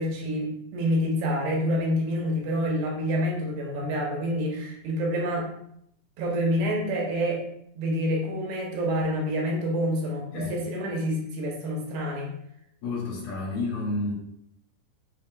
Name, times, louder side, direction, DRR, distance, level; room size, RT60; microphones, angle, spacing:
voice 1, 0.0-5.5 6.2-7.4 7.8-12.3, equal, 90° right, -1 dB, 2.9 m, -27 dB
voice 2, 12.8-14.1, left 2 dB, 75° left, -4 dB, 3.1 m, -30 dB
6.9 x 2.7 x 2.4 m, 0.74 s
omnidirectional pair, 4.4 m